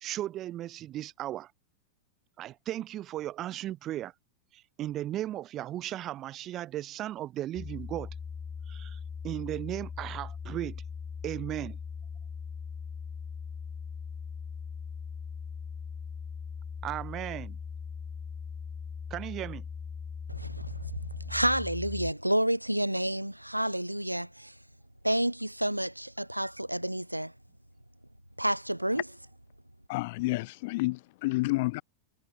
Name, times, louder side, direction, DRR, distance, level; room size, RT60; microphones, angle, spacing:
voice 1, 0.0-1.5 2.4-4.1 4.5-8.1 8.7-10.8 11.2-11.8 16.8-17.6 19.1-19.6, right 13 dB, 35° right, 0.7 m, -36 dB
sound 1, 7.6-22.1, left 6 dB, 20° left, 1.2 m, -40 dB
voice 2, 20.3-24.5 25.0-27.3 28.4-29.0, right 1 dB, 90° right, 0.4 m, -30 dB
voice 3, 29.9-31.8, left 22 dB, 50° left, 0.6 m, -30 dB
figure-of-eight pair, 90°, 0 cm